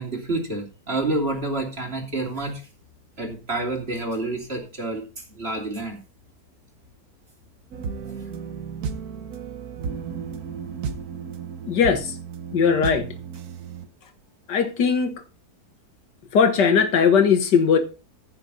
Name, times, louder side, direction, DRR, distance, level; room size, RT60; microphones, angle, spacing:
voice 1, 0.0-2.6 3.2-5.0 5.4-6.0, right 2 dB, 35° right, 3.1 m, -28 dB
sound 1, 7.7-13.9, right 6 dB, 65° right, 1.4 m, -33 dB
voice 2, 11.7-12.2 12.5-13.1 14.5-15.2 16.3-17.8, left 6 dB, 90° left, 2.0 m, -19 dB
15.0 x 6.7 x 4.1 m
omnidirectional pair, 1.8 m